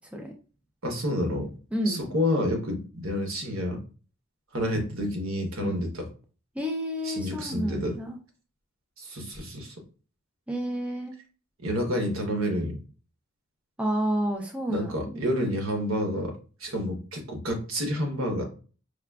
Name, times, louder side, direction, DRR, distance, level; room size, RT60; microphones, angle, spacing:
voice 1, 0.8-1.5 1.9-3.8 4.5-6.1 7.0-8.0 9.0-9.7 11.6-12.8 14.7-18.4, equal, 75° right, 3 dB, 1.0 m, -29 dB
voice 2, 1.7-2.0 5.6-5.8 6.6-8.2 10.5-11.1 13.8-15.2, equal, 5° right, 1 dB, 0.4 m, -30 dB
4.7 x 2.2 x 2.3 m, 0.36 s
head